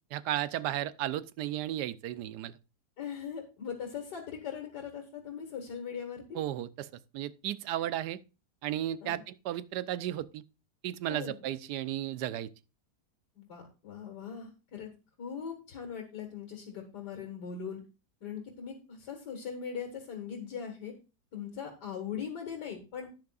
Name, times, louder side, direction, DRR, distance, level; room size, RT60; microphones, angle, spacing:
voice 1, 0.1-2.5 6.3-6.9 7.1-8.2 8.6-10.4 10.8-12.5, right 12 dB, 85° right, 1.2 m, -34 dB
voice 2, 3.0-6.4 9.0-9.2 11.1-11.4 13.4-14.9 15.2-17.8 18.2-20.9 21.3-23.1, left 7 dB, 85° left, 2.3 m, -40 dB
11.5 x 9.5 x 2.4 m
omnidirectional pair, 1.7 m